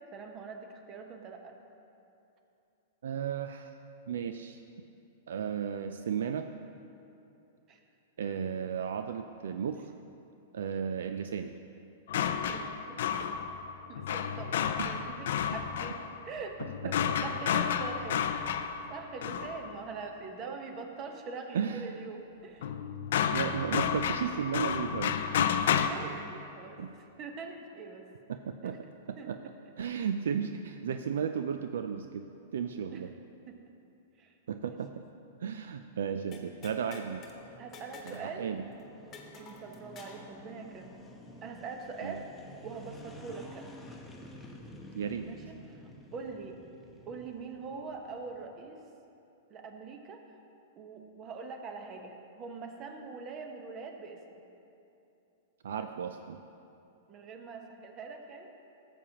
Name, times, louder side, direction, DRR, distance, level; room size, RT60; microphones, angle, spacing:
voice 1, 0.1-1.5 7.7-7.8 12.1-13.5 13.9-16.0 16.3-22.7 25.3-26.9 27.2-28.1 28.6-28.8 29.2-29.3 32.9-33.0 33.5-33.6 34.2-34.3 34.7-34.8 37.6-38.5 39.4-41.0 41.4-42.2 42.6-43.7 45.2-45.4 45.7-46.6 47.0-48.8 49.5-50.2 50.8-54.4 57.1-58.5, right 4 dB, 35° right, 4 dB, 1.0 m, -43 dB
voice 2, 3.0-3.7 4.1-4.6 5.3-6.5 8.2-9.9 10.5-11.5 14.8-14.9 16.8-16.9 20.5-20.6 21.5-21.9 23.3-25.2 26.8-26.9 28.3-29.4 29.8-32.3 32.5-33.1 34.5-35.1 35.4-37.3 38.1-38.7 42.0-42.2 44.9-45.2 55.6-56.4, right 7 dB, 75° right, 7 dB, 0.3 m, -34 dB
sound 1, 12.1-19.9 22.6-25.9, left 8 dB, 70° left, 0.4 m, -31 dB
sound 2, 36.3-37.4 37.7-38.3 38.6-38.7 39.1-40.3, left 5 dB, 30° left, 1.2 m, -49 dB
sound 3, 37.1-48.4, left 1 dB, 10° left, 0.9 m, -51 dB
13.5 x 7.2 x 2.9 m, 2.8 s
hypercardioid pair, 115°, 0 cm